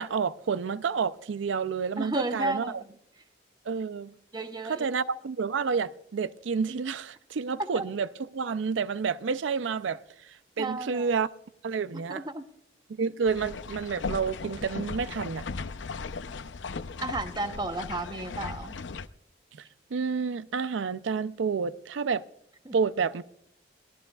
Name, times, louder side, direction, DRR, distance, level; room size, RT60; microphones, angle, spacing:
voice 1, 0.0-2.8 3.7-4.1 4.7-8.1 8.3-11.3 11.6-12.2 12.9-15.4 19.6-22.2 22.7-23.2, right 5 dB, 85° right, 0.5 m, -29 dB
voice 2, 2.0-2.7 4.3-4.9 7.6-7.8 10.6-11.1 11.9-12.5 17.0-18.8 22.6-22.8, right 2 dB, 20° right, 0.8 m, -33 dB
sound 1, 13.3-19.1, left 4 dB, 85° left, 0.6 m, -37 dB
23.0 x 17.0 x 2.3 m
head